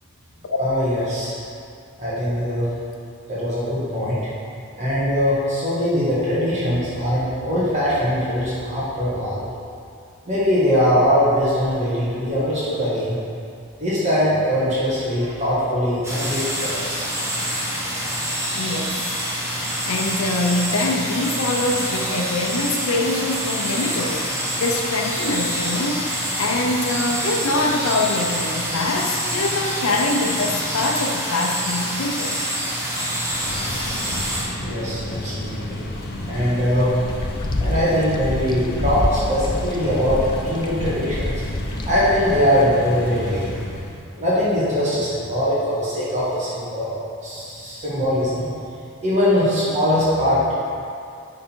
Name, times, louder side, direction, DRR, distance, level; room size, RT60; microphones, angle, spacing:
voice 1, 0.6-1.3 2.0-2.7 3.3-4.2 4.7-9.5 10.3-13.2 13.8-17.0 34.6-35.8 36.2-36.9 37.6-41.4 41.9-43.5 44.2-48.5 49.0-50.5, equal, 35° right, -9 dB, 1.6 m, -21 dB
sound 1, 16.0-34.4, equal, 15° right, 1.3 m, -26 dB
voice 2, 18.5-19.1 19.9-32.4, left 2 dB, 75° left, 1 dB, 0.7 m, -24 dB
sound 2, 33.2-44.0, left 1 dB, 50° left, 0.9 m, -32 dB
sound 3, 36.7-42.4, left 1 dB, 20° left, 0.4 m, -28 dB
9.6 x 3.9 x 4.5 m, 2.4 s
head